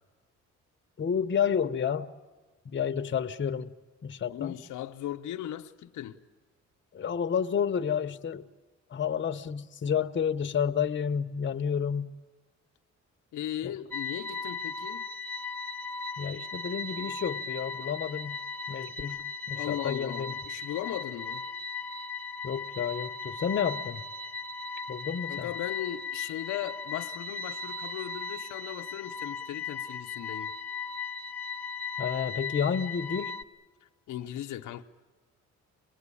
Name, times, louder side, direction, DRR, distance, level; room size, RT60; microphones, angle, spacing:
voice 1, 1.0-2.1 2.6-3.7 4.0-4.5 6.9-8.5 8.9-12.2 13.6-13.7 16.2-18.4 18.7-20.3 22.4-24.0 24.9-25.5 32.0-33.3, left 7 dB, 40° left, 1.0 m, -30 dB
voice 2, 4.3-6.2 13.3-15.1 19.5-21.4 25.3-30.5 33.8-34.8, left 12 dB, 85° left, 0.9 m, -37 dB
sound 1, 13.9-33.4, left 5 dB, 5° left, 1.2 m, -37 dB
26.0 x 19.5 x 9.9 m
cardioid pair, 90°, 30 cm